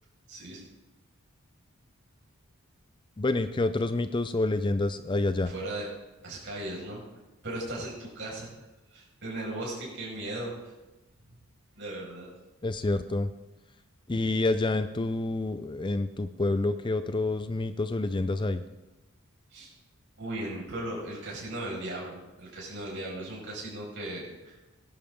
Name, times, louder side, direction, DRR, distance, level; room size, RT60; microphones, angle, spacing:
voice 1, 0.3-0.6 5.5-5.9 6.2-7.0 7.4-8.5 8.9-10.7 11.8-12.3 19.5-19.7 20.2-24.6, right 1 dB, 55° right, -4 dB, 5.6 m, -37 dB
voice 2, 3.2-5.5 12.6-13.3 14.1-18.6, left 2 dB, 20° left, 11 dB, 0.4 m, -28 dB
19.5 x 11.5 x 3.7 m, 1.1 s
head